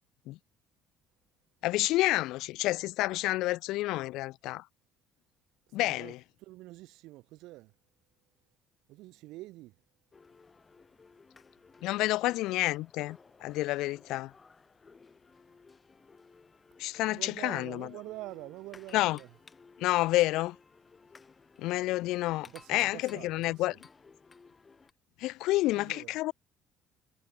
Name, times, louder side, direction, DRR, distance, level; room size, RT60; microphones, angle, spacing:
voice 1, 1.6-4.6 5.7-6.2 11.8-14.3 16.8-17.9 18.9-19.2 19.8-20.6 21.6-23.7 25.2-26.3, left 18 dB, 80° left, 0.3 m, -29 dB
voice 2, 5.7-7.7 8.9-9.8 17.0-19.4 22.4-23.8 25.6-26.2, right 18 dB, 80° right, 1.3 m, -46 dB
sound 1, 10.1-24.9, left 4 dB, 20° left, 5.3 m, -57 dB
cardioid pair, 140°, 0 cm